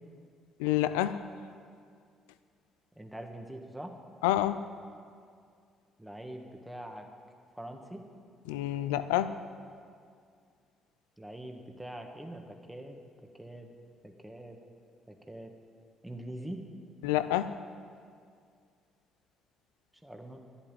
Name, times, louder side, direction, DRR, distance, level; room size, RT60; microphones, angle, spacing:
voice 1, 0.6-1.2 4.2-4.6 8.5-9.4 17.0-17.5, left 13 dB, 85° left, 13 dB, 0.5 m, -28 dB
voice 2, 2.9-4.0 6.0-7.1 7.6-8.1 11.2-13.0 13.3-13.7 14.0-14.6 15.1-15.5 16.0-16.7 20.0-20.4, right 1 dB, 10° right, 3 dB, 1.6 m, -43 dB
11.0 x 8.8 x 9.0 m, 2.2 s
hypercardioid pair, 55°, 0 cm